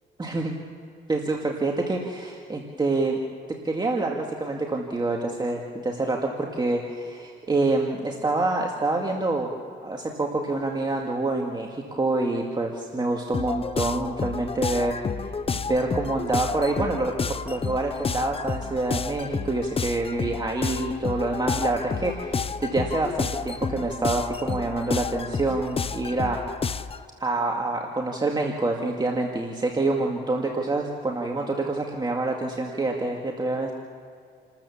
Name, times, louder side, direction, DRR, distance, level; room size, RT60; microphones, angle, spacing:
voice 1, 0.2-0.6 1.1-3.2 3.5-9.5 9.8-15.3 15.7-26.7 27.2-33.7, right 2 dB, 20° right, 0 dB, 2.1 m, -27 dB
sound 1, 13.3-27.0, left 5 dB, 30° left, 0.6 m, -30 dB
29.0 x 13.5 x 7.2 m, 2.2 s
cardioid pair, 90°, 20 cm